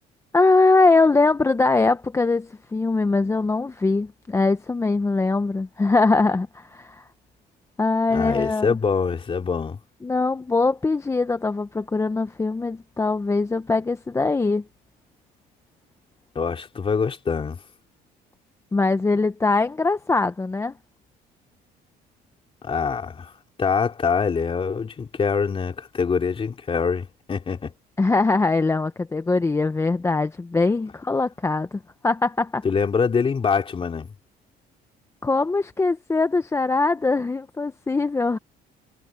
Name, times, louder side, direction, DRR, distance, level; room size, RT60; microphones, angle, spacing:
voice 1, 0.3-7.0 7.8-8.8 10.0-14.6 18.7-20.7 28.0-32.6 35.2-38.4, left 3 dB, 15° left, 0.7 m, -22 dB
voice 2, 8.1-9.8 16.3-17.6 22.6-23.3 23.6-27.7 32.6-34.1, left 5 dB, 30° left, 2.8 m, -24 dB
cardioid pair, 110°, 17 cm